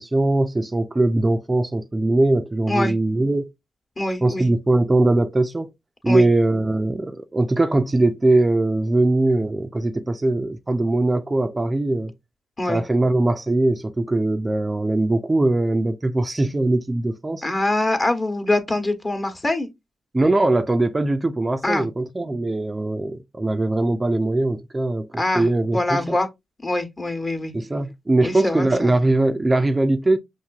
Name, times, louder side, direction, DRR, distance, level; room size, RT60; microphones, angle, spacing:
voice 1, 0.0-3.5 4.2-5.7 6.0-12.1 12.7-17.4 20.1-26.2 27.5-30.2, right 2 dB, 25° right, 0.4 m, -21 dB
voice 2, 4.0-4.5 6.1-6.3 12.6-12.8 17.4-19.7 21.6-21.9 25.2-26.3 26.6-27.5 28.2-29.0, left 2 dB, 30° left, 1.1 m, -24 dB
5.6 x 2.6 x 2.3 m
cardioid pair, 55°, 0 cm